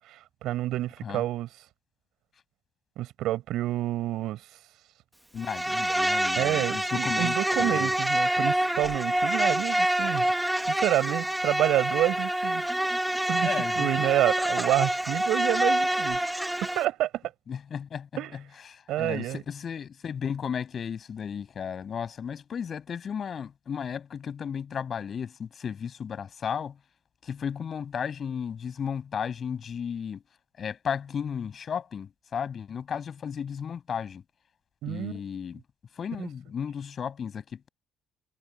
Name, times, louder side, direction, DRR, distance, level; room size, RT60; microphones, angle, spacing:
voice 1, 0.0-1.5 3.0-4.4 6.4-10.3 10.6-12.6 13.3-16.2 16.8-17.2 18.2-18.4 18.9-19.4 34.8-35.2 36.2-36.3, right 14 dB, 75° right, 7.6 m, -28 dB
voice 2, 5.3-7.3 7.6-7.9 13.4-13.9 17.5-18.4 18.7-26.8 27.2-30.2 30.6-34.2 34.8-35.6 35.9-37.7, left 7 dB, 40° left, 7.9 m, -34 dB
Insect, 5.4-16.9, right 1 dB, 5° right, 2.4 m, -27 dB
cardioid pair, 120°, 0 cm